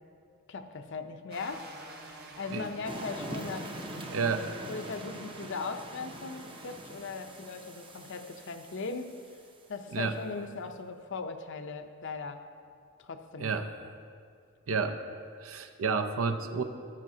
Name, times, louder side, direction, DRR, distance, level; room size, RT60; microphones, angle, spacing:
voice 1, 0.5-1.7 2.4-3.7 4.7-9.2 9.7-12.4 13.0-13.5, left 4 dB, 60° left, 7 dB, 0.6 m, -39 dB
sound 1, 1.3-6.8, right 2 dB, 50° right, 1.2 m, -49 dB
sound 2, 2.8-9.5, right 1 dB, 25° right, 0.7 m, -43 dB
voice 2, 4.1-4.5 9.9-10.1 13.4-13.7 14.7-15.0 15.4-16.6, right 5 dB, 75° right, 7 dB, 0.6 m, -30 dB
13.5 x 10.0 x 2.8 m, 2.2 s
head